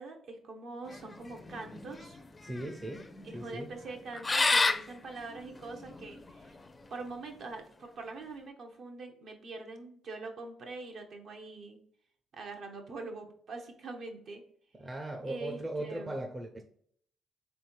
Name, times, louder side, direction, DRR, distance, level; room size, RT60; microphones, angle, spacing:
voice 1, 0.0-2.2 3.2-6.6 6.9-11.8 12.3-14.4 15.3-16.2, right 3 dB, 65° right, 1.0 m, -43 dB
sound 1, 0.9-6.7, left 3 dB, 25° left, 0.4 m, -32 dB
voice 2, 2.4-3.1 3.3-3.7 14.7-16.6, right 1 dB, 25° right, 0.6 m, -38 dB
3.6 x 3.4 x 4.4 m
cardioid pair, 90°, 0 cm